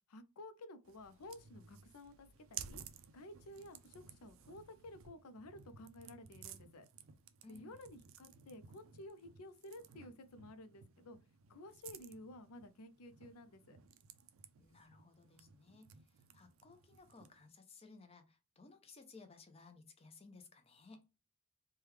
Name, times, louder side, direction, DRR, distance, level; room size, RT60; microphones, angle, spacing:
voice 1, 0.1-2.8 3.1-6.9 7.5-11.2 11.5-13.8, left 1 dB, 80° left, 0.5 m, -53 dB
sound 1, 0.8-17.5, right 8 dB, 60° right, 0.4 m, -56 dB
voice 2, 7.4-7.7 14.6-21.0, left 3 dB, 25° left, 0.5 m, -59 dB
3.3 x 2.2 x 3.1 m
head